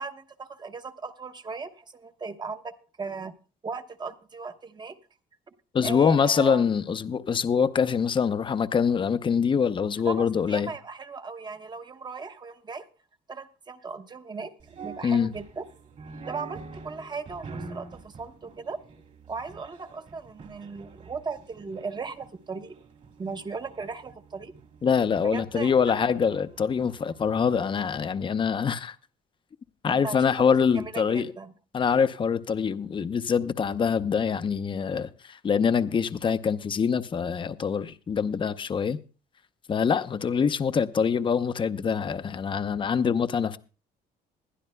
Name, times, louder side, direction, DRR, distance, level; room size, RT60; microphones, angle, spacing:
voice 1, 0.0-3.3 3.6-5.0 5.8-6.6 10.1-12.9 13.3-14.5 14.8-15.7 16.3-18.8 19.3-22.7 23.2-24.5 25.2-25.7 29.9-31.5, right 4 dB, 25° right, 1.0 m, -37 dB
voice 2, 5.7-10.7 15.0-15.3 24.8-29.0 29.8-31.3 31.7-39.0 39.7-43.6, left 6 dB, 30° left, 0.7 m, -24 dB
sound 1, 14.6-27.9, right 4 dB, 45° right, 2.5 m, -46 dB
21.0 x 11.5 x 2.2 m
cardioid pair, 110°, 17 cm